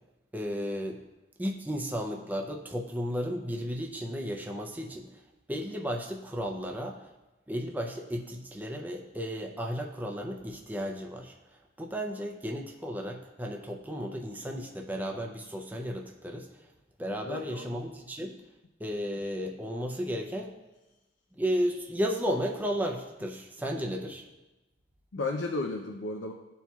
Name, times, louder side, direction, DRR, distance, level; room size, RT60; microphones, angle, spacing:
voice 1, 0.3-1.0 1.4-5.1 5.5-7.0 7.5-11.3 11.8-16.5 17.0-18.4 18.8-20.6 21.4-24.2, equal, 10° right, 1 dB, 0.5 m, -34 dB
voice 2, 17.2-17.8 23.7-24.0 25.1-26.3, left 3 dB, 90° left, 2 dB, 0.5 m, -34 dB
12.0 x 4.3 x 2.3 m, 1.1 s
head